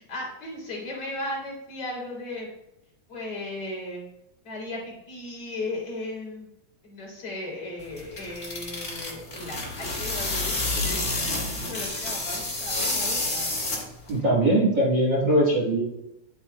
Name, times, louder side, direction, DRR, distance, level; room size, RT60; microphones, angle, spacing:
voice 1, 0.0-2.5 3.1-4.1 4.4-6.5 6.8-13.5, left 2 dB, 50° left, -5 dB, 4.0 m, -36 dB
sound 1, 7.8-14.2, left 2 dB, 25° left, 1.6 m, -29 dB
voice 2, 14.1-15.8, right 1 dB, 45° right, -6 dB, 1.8 m, -21 dB
10.5 x 8.1 x 2.2 m, 0.88 s
omnidirectional pair, 3.5 m